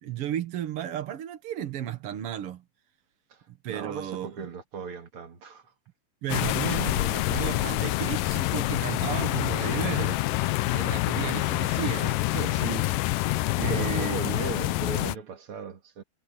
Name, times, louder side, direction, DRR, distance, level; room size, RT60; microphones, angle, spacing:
voice 1, 0.0-2.6 3.6-4.3 6.2-10.2 10.7-12.1 13.6-14.2, right 11 dB, 75° right, 1.3 m, -33 dB
voice 2, 3.7-5.7 12.0-13.1 13.6-16.0, right 5 dB, 40° right, 2.3 m, -37 dB
sound 1, 6.3-15.2, left 18 dB, 80° left, 1.9 m, -27 dB
omnidirectional pair, 4.5 m